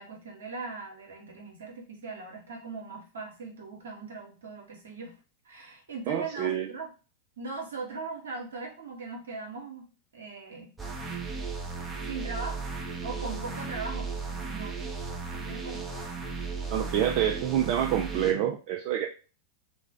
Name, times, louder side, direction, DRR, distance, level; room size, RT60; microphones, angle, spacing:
voice 1, 0.0-5.1 5.4-6.9 7.4-9.9 10.1-10.7 12.1-12.6 13.0-15.9 16.2-16.9, right 3 dB, 65° right, 0 dB, 0.9 m, -40 dB
voice 2, 6.1-6.7 16.7-19.1, right 10 dB, 45° right, 2 dB, 0.3 m, -27 dB
sound 1, 10.8-18.3, right 4 dB, 15° right, 0.7 m, -35 dB
2.4 x 2.1 x 3.6 m, 0.35 s
figure-of-eight pair, 90°, 0 cm